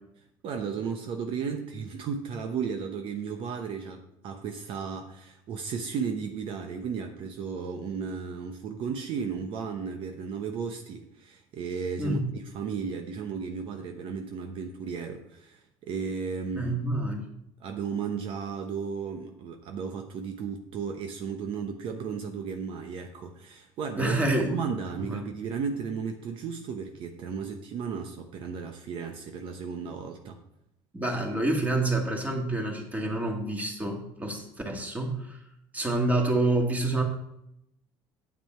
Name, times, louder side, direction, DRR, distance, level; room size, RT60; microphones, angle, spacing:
voice 1, 0.4-12.2 12.5-16.8 17.6-24.2 24.5-30.4, right 6 dB, 60° right, 5 dB, 0.9 m, -34 dB
voice 2, 16.5-17.3 24.0-24.6 25.0-25.2 30.9-35.4 35.7-37.0, right 2 dB, 15° right, 1 dB, 2.1 m, -28 dB
8.8 x 7.6 x 4.5 m, 0.79 s
cardioid pair, 110°, 10 cm